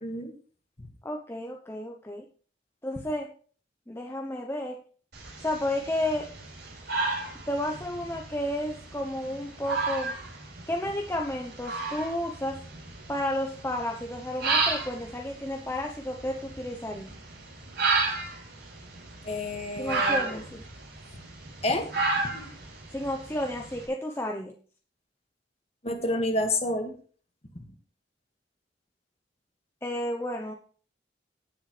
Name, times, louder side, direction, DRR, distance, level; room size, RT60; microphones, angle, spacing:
voice 1, 0.0-0.3 19.2-20.4 21.6-21.9 22.2-22.3 25.8-26.9, left 1 dB, 35° left, 4 dB, 1.9 m, -29 dB
voice 2, 1.0-2.2 2.8-3.3 3.9-4.8 5.4-6.3 7.5-10.1 10.7-12.6 13.1-17.1 19.8-20.6 22.9-24.5 29.8-30.5, left 1 dB, 15° left, 2 dB, 0.8 m, -32 dB
sound 1, 5.1-23.8, right 3 dB, 60° right, 5.2 m, -33 dB
17.5 x 7.1 x 3.3 m, 0.42 s
head